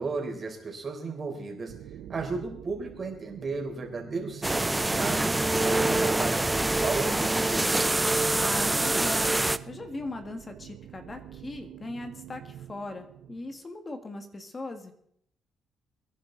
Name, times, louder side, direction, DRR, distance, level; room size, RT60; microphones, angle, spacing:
voice 1, 0.0-1.7 2.1-5.3 5.6-7.8, right 4 dB, 40° right, 2 dB, 3.9 m, -34 dB
sound 1, 1.7-13.6, right 10 dB, 80° right, 0.7 m, -46 dB
sound 2, 4.4-9.6, right 2 dB, 15° right, 0.6 m, -25 dB
voice 2, 8.3-9.4 9.7-14.9, left 2 dB, 30° left, 6 dB, 1.9 m, -39 dB
22.5 x 10.5 x 4.0 m, 0.69 s
cardioid pair, 90°, 0 cm